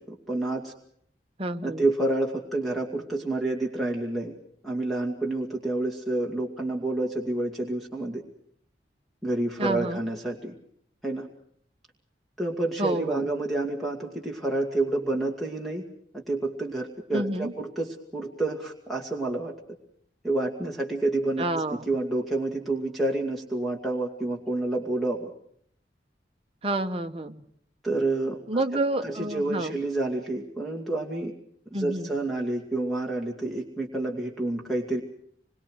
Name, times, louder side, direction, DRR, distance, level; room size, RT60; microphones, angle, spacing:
voice 1, 0.1-0.7 1.6-4.3 4.6-8.2 9.2-10.5 11.0-11.3 12.4-15.8 16.1-19.5 20.2-25.3 27.8-28.6 29.0-31.3 31.7-35.0, right 2 dB, ahead, 0 dB, 2.3 m, -29 dB
voice 2, 1.4-1.8 9.6-10.0 12.8-13.3 17.1-17.5 21.4-21.8 26.6-27.4 28.5-29.8 31.7-32.1, right 1 dB, 30° right, 7 dB, 1.2 m, -29 dB
26.0 x 22.5 x 6.4 m, 0.65 s
head